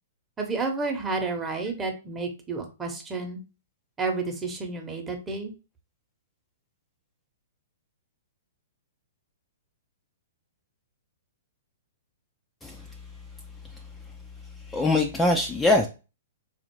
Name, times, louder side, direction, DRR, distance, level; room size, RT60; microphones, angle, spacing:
voice 1, 0.4-3.4 4.0-5.5, right 3 dB, 15° right, 2 dB, 0.9 m, -30 dB
voice 2, 14.6-15.9, left 2 dB, 10° left, 3 dB, 0.4 m, -23 dB
4.1 x 2.5 x 3.0 m, 0.31 s
hypercardioid pair, 115°, 0 cm